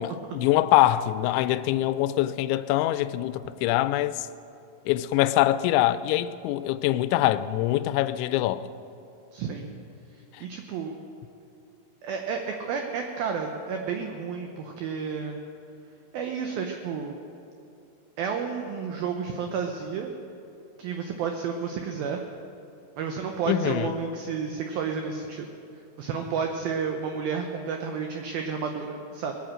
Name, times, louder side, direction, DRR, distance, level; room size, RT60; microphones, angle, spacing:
voice 1, 0.0-4.3 4.9-8.7 23.5-23.9, left 14 dB, 85° left, 2.8 m, -24 dB
voice 2, 9.3-9.7 10.4-11.0 12.0-15.4 16.1-17.2 18.2-20.1 20.8-22.2 23.0-25.5 26.0-29.3, right 6 dB, 80° right, 2.1 m, -31 dB
20.5 x 8.7 x 7.6 m
omnidirectional pair, 5.3 m